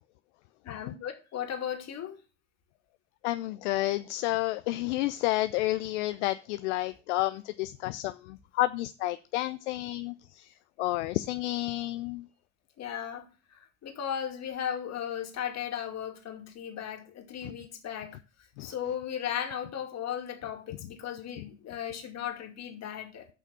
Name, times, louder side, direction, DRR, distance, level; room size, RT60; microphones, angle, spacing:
voice 1, 0.6-2.2 12.8-18.2 18.6-23.3, left 9 dB, 45° left, 2.4 m, -36 dB
voice 2, 3.2-10.5 10.8-12.2 17.4-17.5 18.6-18.7, left 17 dB, 70° left, 0.6 m, -30 dB
7.0 x 5.8 x 6.9 m
hypercardioid pair, 70°, 36 cm